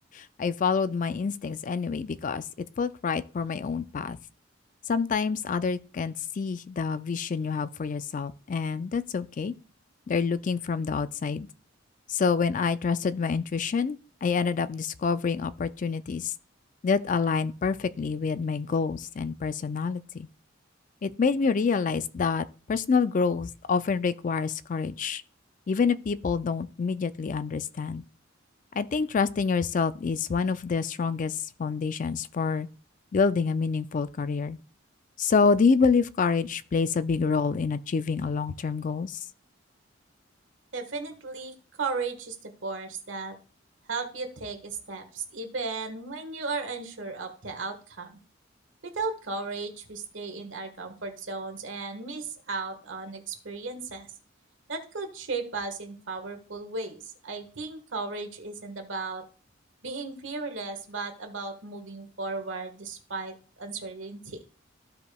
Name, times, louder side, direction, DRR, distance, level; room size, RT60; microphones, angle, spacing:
voice 1, 0.1-4.2 4.9-9.5 10.1-11.5 12.1-16.3 16.8-20.3 21.0-25.2 25.7-28.0 28.7-32.7 33.1-34.6 35.2-39.2, left 5 dB, 40° left, 0.4 m, -27 dB
voice 2, 40.7-43.3 43.9-48.2 48.8-54.1 54.7-59.2 59.8-64.4, right 3 dB, 75° right, 1.5 m, -35 dB
14.5 x 5.0 x 2.3 m
head